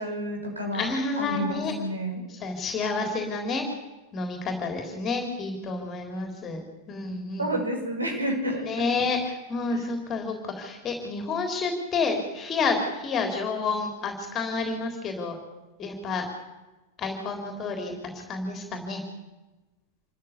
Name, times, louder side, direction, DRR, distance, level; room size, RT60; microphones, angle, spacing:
voice 1, 0.0-0.9 1.1-2.2 7.4-8.8 9.7-9.8, equal, 80° right, 2 dB, 6.4 m, -30 dB
voice 2, 0.7-1.7 2.3-3.7 4.1-7.5 8.6-15.4 15.8-16.3 17.0-19.0, left 4 dB, 25° left, 4 dB, 3.8 m, -29 dB
27.5 x 14.0 x 8.4 m, 1.1 s
figure-of-eight pair, 90°, 0 cm